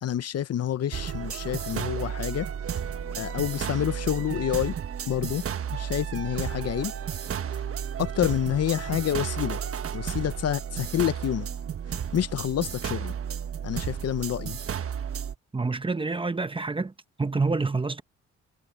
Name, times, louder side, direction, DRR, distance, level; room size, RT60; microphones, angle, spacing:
voice 1, 0.0-2.5 3.2-4.8 5.1-5.4 5.7-6.9 8.0-9.6 9.9-11.5 12.1-13.1 13.6-14.6, left 11 dB, 55° left, 0.9 m, -28 dB
sound 1, 0.9-15.4, right 8 dB, 50° right, 1.3 m, -33 dB
voice 2, 15.5-16.9 17.2-18.0, right 3 dB, 15° right, 1.0 m, -27 dB
cardioid pair, 90°, 30 cm